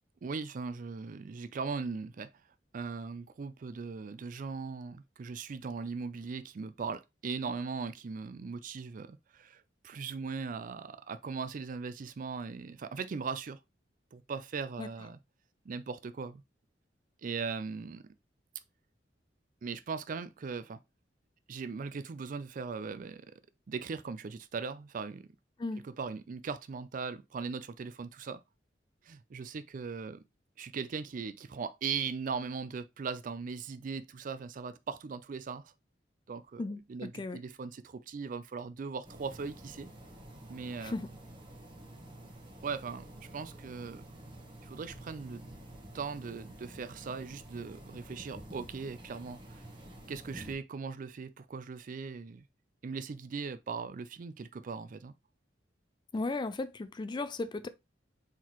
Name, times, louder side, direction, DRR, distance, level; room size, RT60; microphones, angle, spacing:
voice 1, 0.2-2.3 2.7-13.6 14.1-15.2 15.7-16.4 17.2-18.0 19.6-20.8 21.5-23.3 23.7-25.3 25.8-28.4 29.0-30.2 30.6-35.7 36.3-39.9 40.5-40.9 42.6-44.0 44.6-45.4 45.9-49.6 50.1-52.4 52.8-55.1, right 5 dB, 45° right, 0.4 m, -39 dB
voice 2, 36.6-37.4 40.8-41.1 56.1-57.7, left 3 dB, 25° left, 0.3 m, -36 dB
sound 1, 39.0-50.6, right 1 dB, 25° right, 1.1 m, -49 dB
4.5 x 3.9 x 2.9 m
head